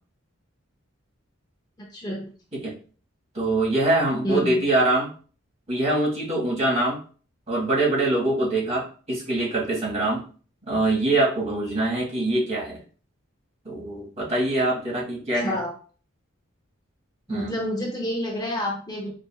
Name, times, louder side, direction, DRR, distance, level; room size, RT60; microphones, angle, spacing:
voice 1, 1.8-2.3 4.2-4.6 15.3-15.7 17.3-19.1, equal, 20° left, 0 dB, 0.6 m, -29 dB
voice 2, 3.3-5.1 5.7-7.0 7.5-10.2 10.7-12.8 13.6-15.5 17.3-17.6, right 2 dB, 35° right, -4 dB, 1.5 m, -24 dB
5.1 x 2.5 x 2.2 m, 0.40 s
head